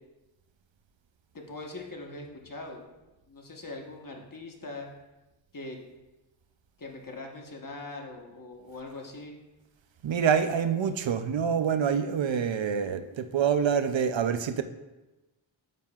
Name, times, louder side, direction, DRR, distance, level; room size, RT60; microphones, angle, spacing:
voice 1, 1.3-2.8 3.3-4.9 5.5-5.8 6.8-9.3, left 2 dB, 45° left, 0 dB, 1.2 m, -41 dB
voice 2, 10.0-14.6, right 7 dB, 70° right, 10 dB, 0.6 m, -26 dB
9.1 x 7.2 x 2.4 m, 1.0 s
wide cardioid pair, 95°, 47 cm